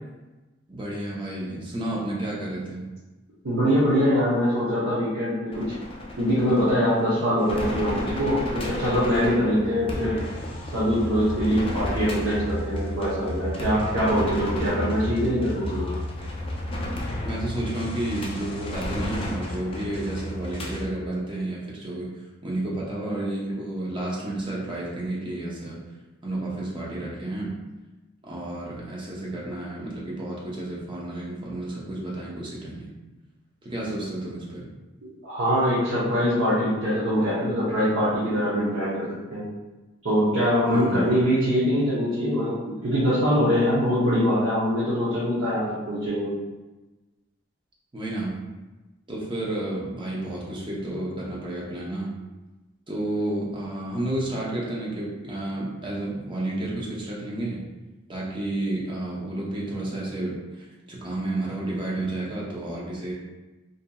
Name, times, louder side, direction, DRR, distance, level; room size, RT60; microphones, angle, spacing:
voice 1, 0.7-2.9 16.7-16.9 17.2-25.8 26.2-27.5 28.2-32.9 33.6-34.7 40.7-41.2 47.9-48.4 49.1-52.1 52.9-57.6 58.1-63.1, right 1 dB, 25° right, -5 dB, 0.6 m, -31 dB
voice 2, 3.4-5.6 6.2-10.2 10.7-15.9 35.2-39.4 40.0-46.3, equal, 65° right, -10 dB, 0.7 m, -23 dB
sound 1, 5.5-20.8, left 1 dB, 25° left, 0.4 m, -32 dB
2.7 x 2.6 x 2.2 m, 1.1 s
head